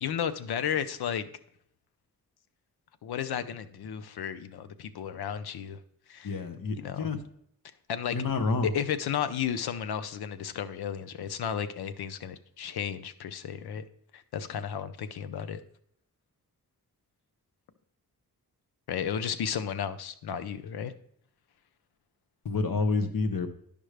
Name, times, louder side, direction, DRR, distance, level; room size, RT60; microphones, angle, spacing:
voice 1, 0.0-1.2 3.0-5.8 6.1-6.3 6.8-7.1 7.9-8.2 8.6-13.8 14.1-15.6 18.9-20.9, left 8 dB, 90° left, 12 dB, 0.6 m, -33 dB
voice 2, 6.2-7.2 8.1-8.7 22.4-23.5, left 4 dB, 65° left, 7 dB, 0.9 m, -28 dB
11.0 x 5.2 x 3.3 m, 0.68 s
cardioid pair, 65°, 37 cm